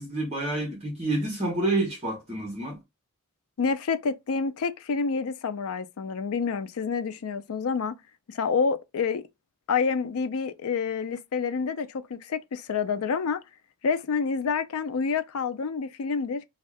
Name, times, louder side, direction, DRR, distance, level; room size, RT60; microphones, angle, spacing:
voice 1, 0.0-2.8, right 2 dB, 30° right, 1.0 m, -28 dB
voice 2, 3.6-7.9 8.3-9.3 9.7-13.4 13.8-16.4, left 5 dB, 75° left, 0.4 m, -28 dB
2.6 x 2.3 x 3.2 m
head